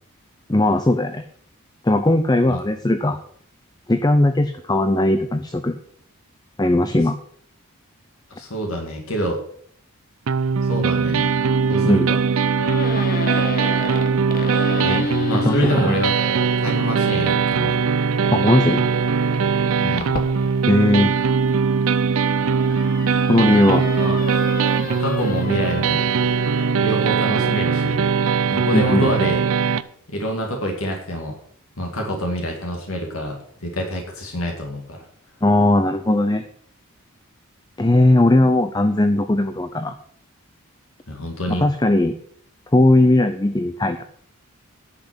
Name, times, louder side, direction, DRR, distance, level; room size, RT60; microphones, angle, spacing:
voice 1, 0.5-1.2 1.8-3.2 3.9-5.7 6.6-7.2 11.9-12.1 15.5-16.0 18.3-18.8 20.7-21.1 23.3-23.8 28.7-29.1 35.4-36.4 37.8-39.9 41.5-42.1 42.7-44.0, left 1 dB, 20° left, 9 dB, 0.5 m, -18 dB
voice 2, 8.3-9.4 10.6-11.3 11.7-12.2 14.8-16.1 16.6-17.8 19.8-20.2 23.9-24.2 24.9-26.0 26.7-28.1 28.5-29.4 30.1-31.4 31.8-35.0 41.1-41.7, equal, 70° left, 1 dB, 2.3 m, -27 dB
sound 1, 10.3-29.8, right 5 dB, 70° right, 0.5 m, -20 dB
sound 2, 12.6-16.7 18.1-21.3 21.9-26.9, left 2 dB, 40° left, 1.3 m, -32 dB
10.5 x 5.9 x 7.6 m, 0.62 s
head